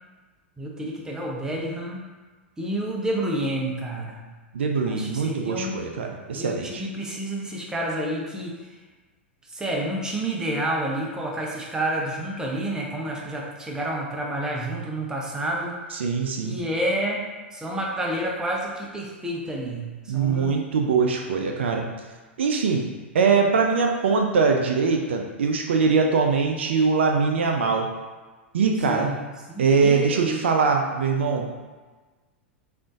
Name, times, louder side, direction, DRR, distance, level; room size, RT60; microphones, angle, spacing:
voice 1, 0.6-2.0 2.6-4.2 4.8-5.8 6.3-8.6 9.5-15.8 16.4-20.6 28.9-29.2 29.5-30.5 30.9-31.0, right 1 dB, 10° right, -2 dB, 0.5 m, -29 dB
voice 2, 4.5-6.8 16.0-16.6 20.1-21.9 22.4-22.8 23.1-27.9 28.5-29.1 29.6-31.5, right 5 dB, 70° right, 2 dB, 0.4 m, -22 dB
3.6 x 2.5 x 2.4 m, 1.3 s
hypercardioid pair, 100°, 6 cm